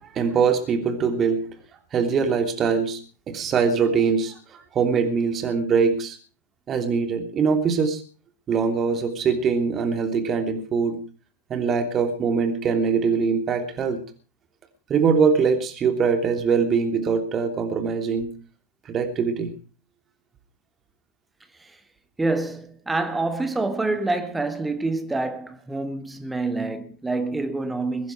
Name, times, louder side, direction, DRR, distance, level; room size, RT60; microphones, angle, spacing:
voice 1, 0.1-1.5 1.9-3.0 3.3-4.3 4.7-6.2 6.7-8.0 8.5-11.0 11.5-14.0 14.9-18.3 18.9-19.5, right 5 dB, 25° right, 3.0 m, -22 dB
voice 2, 22.2-28.1, right 2 dB, 10° right, 1.7 m, -27 dB
22.0 x 10.5 x 4.7 m
figure-of-eight pair, 90°, 0 cm